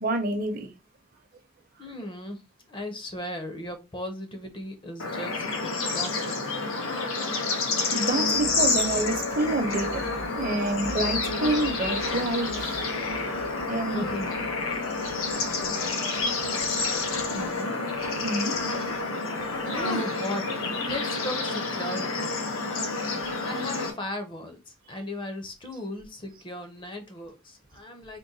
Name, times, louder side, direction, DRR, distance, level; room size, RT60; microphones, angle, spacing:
voice 1, 0.0-0.7 7.9-10.0 10.3-12.8 13.7-14.0 18.2-18.5, right 2 dB, 45° right, 0.7 m, -28 dB
voice 2, 1.8-2.4 2.7-6.4 13.9-14.3 17.3-17.8 19.7-20.5 20.8-22.3 23.4-28.2, left 1 dB, 25° left, 0.6 m, -36 dB
Bird / Insect / Frog, 5.0-23.9, left 3 dB, 85° left, 0.9 m, -29 dB
Telephone, 8.3-15.3, left 1 dB, 90° right, 0.6 m, -43 dB
3.7 x 2.2 x 3.9 m
head